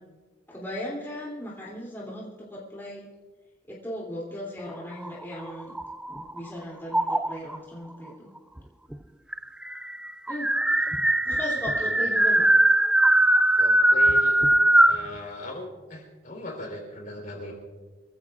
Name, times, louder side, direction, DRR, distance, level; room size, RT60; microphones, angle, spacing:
voice 1, 0.5-3.1 3.7-5.7 6.1-8.3 10.3-10.5 11.2-12.5, equal, 10° left, -5 dB, 3.0 m, -37 dB
sound 1, 4.9-6.4 6.9-7.6 8.6-8.7 8.9-9.0 9.3-15.1, right 1 dB, 5° right, 0.3 m, -21 dB
voice 2, 11.6-12.1 13.6-14.4 14.8-17.5, left 1 dB, 45° left, 1 dB, 4.2 m, -39 dB
25.5 x 15.0 x 2.5 m, 1.3 s
head